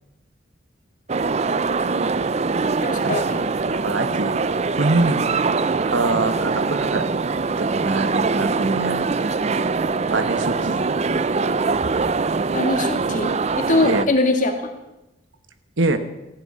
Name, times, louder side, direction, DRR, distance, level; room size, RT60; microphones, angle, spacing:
sound 1, 1.1-14.1, right 4 dB, 35° right, 0.5 m, -23 dB
voice 1, 2.8-3.4 12.5-14.6, left 2 dB, 40° left, 4 dB, 1.9 m, -22 dB
voice 2, 3.7-4.4 4.8-5.2 5.9-7.1 7.6-9.1 10.1-10.8 13.8-14.1 15.8-16.0, right 2 dB, 80° right, 9 dB, 1.3 m, -24 dB
15.0 x 6.9 x 9.7 m, 0.97 s
head